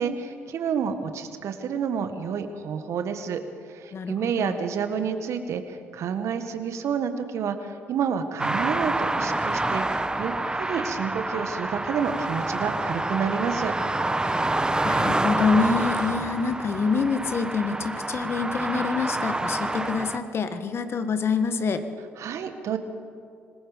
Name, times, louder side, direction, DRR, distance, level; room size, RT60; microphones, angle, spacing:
voice 1, 0.0-3.4 3.7-13.7 22.2-22.8, right 7 dB, 60° right, 8 dB, 1.7 m, -29 dB
voice 2, 3.9-4.6 14.3-14.4 14.8-21.9, left 5 dB, 45° left, 9 dB, 1.5 m, -26 dB
sound 1, 8.4-20.2, right 2 dB, 15° right, 1.3 m, -27 dB
26.0 x 20.0 x 5.3 m, 2.4 s
hypercardioid pair, 55°, 6 cm